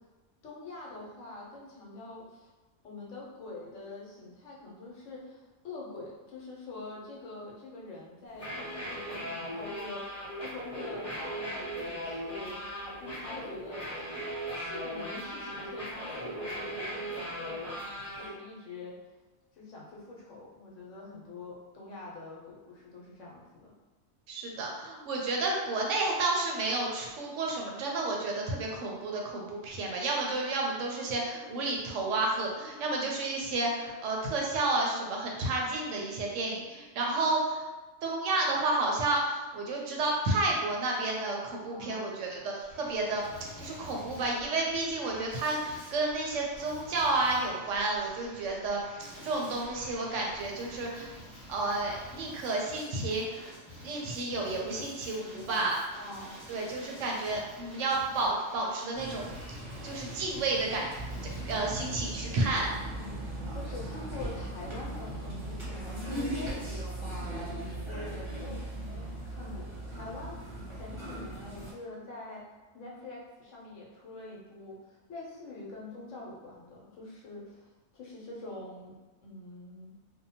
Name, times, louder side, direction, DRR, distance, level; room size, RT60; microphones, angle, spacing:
voice 1, 0.4-2.5 2.8-14.2 14.5-17.8 18.2-19.0 19.5-23.7 41.7-42.1 54.2-54.9 55.3-56.7 62.9-67.5 67.8-72.5 72.7-77.7 77.9-78.9 79.2-79.9, left 2 dB, 75° left, -4 dB, 1.0 m, -45 dB
sound 1, 8.3-18.3, equal, 30° left, 0.8 m, -38 dB
voice 2, 24.3-37.7 38.0-51.1 51.5-53.5 53.8-55.8 56.5-59.6 59.8-60.9 61.4-62.7, right 2 dB, 75° right, -1 dB, 0.9 m, -31 dB
Male speech man speaking, 42.6-61.6, equal, 15° left, 1.0 m, -49 dB
sound 2, 58.9-71.7, right 1 dB, 25° right, 0.8 m, -38 dB
2.7 x 2.1 x 2.7 m, 1.2 s
omnidirectional pair, 1.3 m